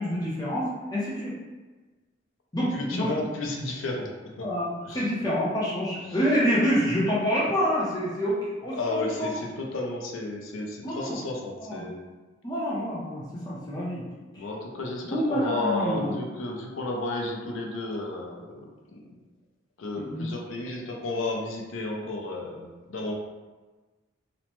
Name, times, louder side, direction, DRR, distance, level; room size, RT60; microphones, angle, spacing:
voice 1, 0.0-1.4 2.5-3.1 4.4-9.3 10.8-11.2 11.6-11.9 12.4-14.0 14.3-14.4 15.1-16.1 20.0-20.3, equal, 20° left, -6 dB, 0.6 m, -27 dB
voice 2, 2.7-4.5 4.8-5.1 6.1-6.2 8.7-12.0 14.4-19.0 19.8-23.1, left 2 dB, 85° left, 0 dB, 0.5 m, -33 dB
3.0 x 2.1 x 2.9 m, 1.3 s
head